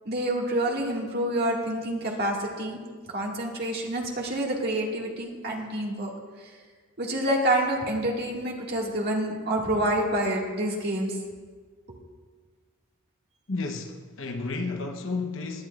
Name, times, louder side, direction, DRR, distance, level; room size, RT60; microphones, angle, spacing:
voice 1, 0.1-2.8 3.1-6.1 7.0-11.1, right 1 dB, 50° right, 1.9 m, -27 dB
voice 2, 13.5-15.7, left 3 dB, 60° left, 0.9 m, -32 dB
18.5 x 11.0 x 2.5 m
head